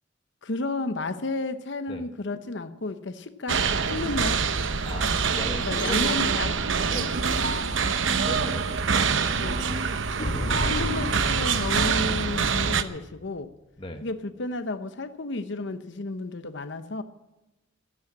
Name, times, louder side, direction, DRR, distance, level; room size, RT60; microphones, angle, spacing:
voice 1, 0.4-4.4 5.7-6.5 6.9-7.1 9.4-9.6 10.6-13.5 14.0-17.0, left 2 dB, 65° left, 10 dB, 0.9 m, -32 dB
sound 1, 3.5-12.8, right 5 dB, 75° right, 0.9 m, -25 dB
voice 2, 5.3-6.2 6.9-7.2 8.3-9.0 13.8-14.0, left 1 dB, 30° left, 5 dB, 1.2 m, -37 dB
sound 2, 7.1-12.3, right 1 dB, 35° right, 0.8 m, -39 dB
sound 3, 10.2-12.8, left 1 dB, 45° left, 2.0 m, -33 dB
13.5 x 12.0 x 7.5 m, 0.96 s
head